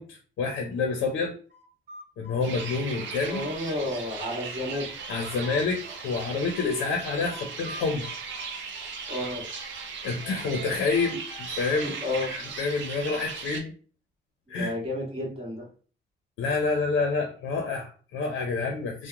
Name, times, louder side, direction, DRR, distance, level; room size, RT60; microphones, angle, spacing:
voice 1, 0.0-1.3 2.2-3.5 5.1-8.1 10.0-11.2 11.5-12.0 12.3-13.7 14.5-14.7 16.4-19.1, left 4 dB, 80° left, 3 dB, 0.6 m, -28 dB
sound 1, 1.5-4.0 4.3-6.9 7.3-9.9 10.2-12.8, left 2 dB, 45° right, 1.2 m, -47 dB
sound 2, 2.4-13.6, right 5 dB, 70° right, 0.6 m, -38 dB
voice 2, 3.3-4.9 9.1-9.5 11.8-12.3 14.6-15.6, left 1 dB, 30° right, -1 dB, 1.3 m, -31 dB
2.8 x 2.1 x 2.3 m, 0.39 s
cardioid pair, 90°, 20 cm